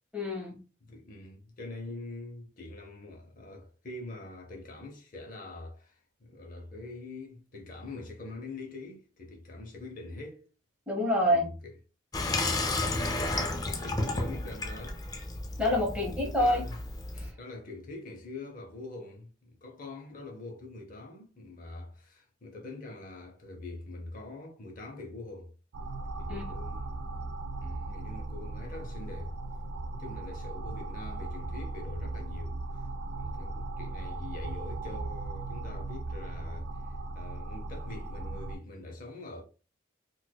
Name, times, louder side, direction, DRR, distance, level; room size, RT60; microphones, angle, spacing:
voice 1, 0.1-0.6 10.9-11.4 15.6-16.7 17.2-17.3 26.3-26.4, left 1 dB, 5° right, 0.9 m, -27 dB
voice 2, 0.8-10.4 11.2-11.7 13.1-15.0 15.9-16.8 17.4-25.5 26.2-27.0 27.6-29.3 29.9-32.6 33.2-36.7 37.2-39.4, left 2 dB, 45° left, 0.7 m, -44 dB
Water tap faucet / Sink (filling or washing), 12.1-17.3, left 2 dB, 20° left, 0.4 m, -32 dB
sound 1, 25.7-38.6, right 2 dB, 60° right, 0.4 m, -38 dB
4.4 x 2.2 x 2.2 m
head